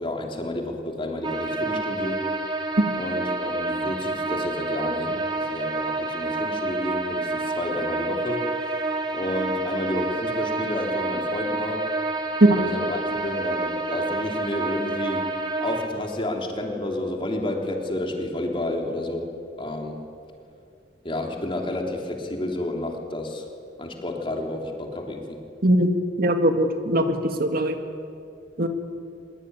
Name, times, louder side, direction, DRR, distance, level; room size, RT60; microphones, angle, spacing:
voice 1, 0.0-2.3 2.9-8.9 9.1-11.9 12.5-15.3 15.6-20.0 21.0-23.5 23.8-25.4, left 1 dB, 25° left, 1 dB, 3.4 m, -30 dB
sound 1, 1.2-15.9, right 2 dB, 20° right, 2.5 m, -28 dB
voice 2, 26.2-27.8 28.6-28.7, right 1 dB, 50° right, 5 dB, 2.1 m, -21 dB
24.5 x 22.5 x 9.9 m, 2.5 s
head